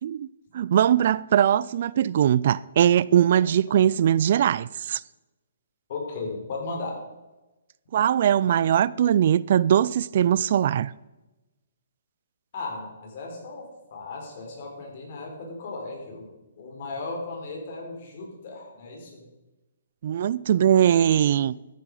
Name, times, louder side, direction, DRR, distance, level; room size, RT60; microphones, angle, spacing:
voice 1, 0.5-5.0 7.9-10.9 20.0-21.5, right 10 dB, 50° right, 0.3 m, -21 dB
voice 2, 5.9-7.0 12.5-16.3 16.6-19.2 21.2-21.3, left 3 dB, 45° left, 4.2 m, -36 dB
13.5 x 9.1 x 4.9 m
hypercardioid pair, 155°, 0 cm